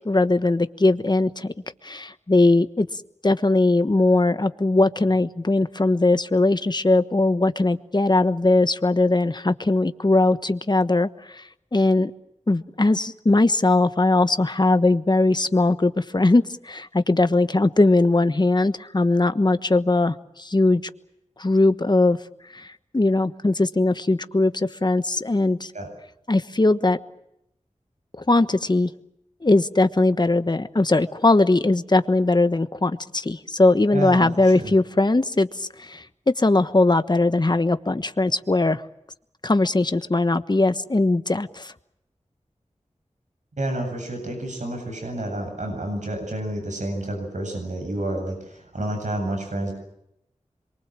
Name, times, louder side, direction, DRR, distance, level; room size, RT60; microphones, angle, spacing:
voice 1, 0.0-1.5 1.8-11.4 11.7-12.1 12.5-20.8 21.4-22.2 22.5-25.7 26.3-27.0 28.1-28.9 29.4-36.0 36.4-38.8 39.4-41.7, left 2 dB, 35° left, 11 dB, 1.2 m, -20 dB
voice 2, 33.9-34.7 43.6-49.7, right 1 dB, 75° right, 3 dB, 7.9 m, -29 dB
27.0 x 23.5 x 7.6 m, 0.78 s
wide cardioid pair, 55°, 13 cm